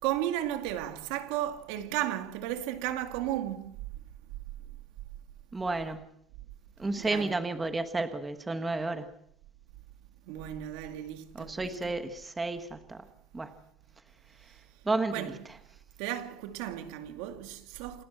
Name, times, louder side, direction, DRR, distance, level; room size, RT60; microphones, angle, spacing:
voice 1, 0.0-3.8 7.0-7.3 10.3-11.9 15.1-15.4 16.0-18.0, right 12 dB, 85° right, 2.2 m, -34 dB
voice 2, 5.5-6.1 6.8-9.1 11.3-13.1 13.3-13.5 14.8-15.3, right 3 dB, 10° right, 1.3 m, -32 dB
28.0 x 12.0 x 7.7 m
cardioid pair, 175°, 0 cm